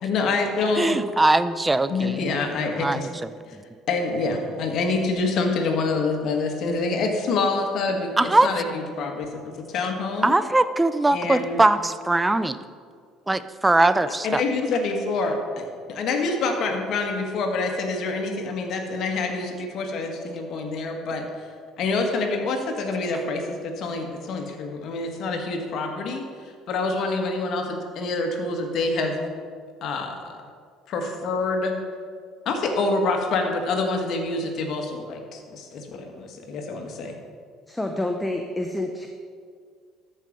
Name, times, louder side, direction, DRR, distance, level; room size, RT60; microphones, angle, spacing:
voice 1, 0.0-1.0 1.9-3.1 3.5-3.6 3.9-9.4 9.7-10.4 11.1-11.6 14.1-21.2 21.8-29.2 29.8-30.4 30.9-31.7 32.4-37.1, left 3 dB, 60° left, 3 dB, 1.6 m, -26 dB
voice 2, 0.8-2.2 2.8-3.1 8.2-8.5 10.2-12.6 13.3-14.4, right 2 dB, 15° right, 13 dB, 0.5 m, -21 dB
voice 3, 37.7-39.1, left 1 dB, 10° left, 4 dB, 0.8 m, -28 dB
13.0 x 5.6 x 5.1 m, 2.1 s
supercardioid pair, 80°, 0 cm